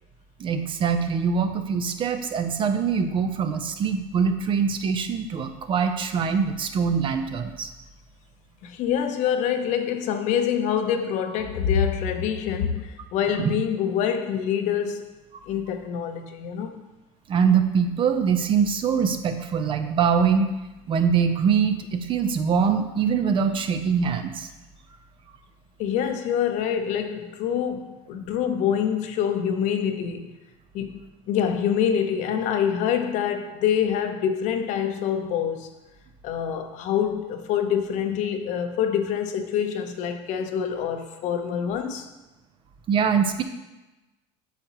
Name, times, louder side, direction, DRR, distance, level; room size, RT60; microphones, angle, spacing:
voice 1, 0.4-7.7 13.3-13.6 17.3-20.5 20.9-24.5 42.9-43.4, right 6 dB, 35° right, 0.7 m, -23 dB
voice 2, 8.6-15.1 15.5-16.8 25.8-30.3 30.7-31.0 31.3-35.7 36.2-42.1, left 8 dB, 60° left, 0.8 m, -26 dB
8.2 x 6.6 x 3.0 m
supercardioid pair, 115°, 14 cm